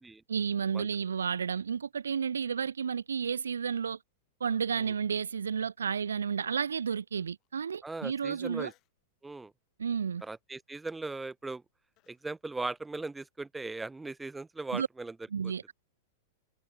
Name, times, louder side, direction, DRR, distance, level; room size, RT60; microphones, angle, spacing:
voice 1, 0.3-4.0 4.4-8.7 9.8-10.2 14.7-14.9 15.3-15.7, right 6 dB, 85° right, 0.5 m, -32 dB
Human voice, 6.4-6.8 7.4-7.5 8.6-9.0 9.5-9.8 10.2-12.2, left 17 dB, 40° left, 3.8 m, -71 dB
voice 2, 7.8-8.7 9.2-9.5 10.2-11.6 12.1-15.1 15.4-15.5, right 3 dB, 10° right, 0.5 m, -39 dB
hypercardioid pair, 110°, 0 cm